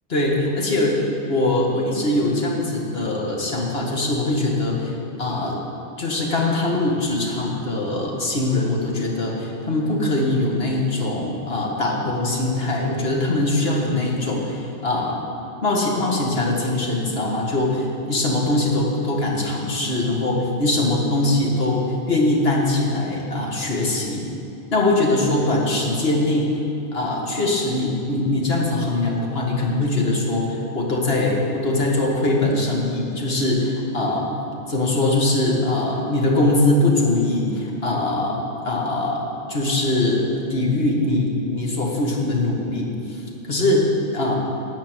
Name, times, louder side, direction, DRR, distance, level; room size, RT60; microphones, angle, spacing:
voice 1, 0.1-5.6 6.0-15.2 15.6-24.3 24.7-26.5 26.9-34.3 34.7-39.2 39.5-43.2 43.5-44.4, left 2 dB, 60° left, -1 dB, 2.1 m, -22 dB
13.0 x 5.9 x 9.2 m, 2.8 s
omnidirectional pair, 1.2 m